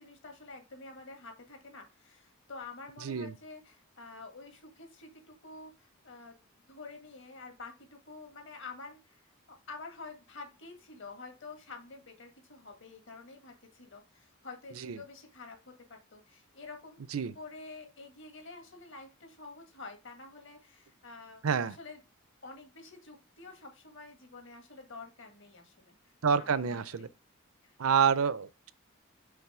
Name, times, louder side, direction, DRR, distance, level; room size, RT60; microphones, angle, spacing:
voice 1, 0.0-6.4 6.7-15.6 15.9-17.0 17.3-22.0 22.4-26.0 26.4-27.1 27.6-27.7 28.2-28.3, left 3 dB, 60° left, 1.8 m, -48 dB
voice 2, 3.0-3.3 14.8-15.0 17.1-17.3 21.4-21.7 26.2-27.1 27.8-28.7, right 6 dB, 80° right, 0.5 m, -28 dB
5.7 x 3.7 x 4.8 m
head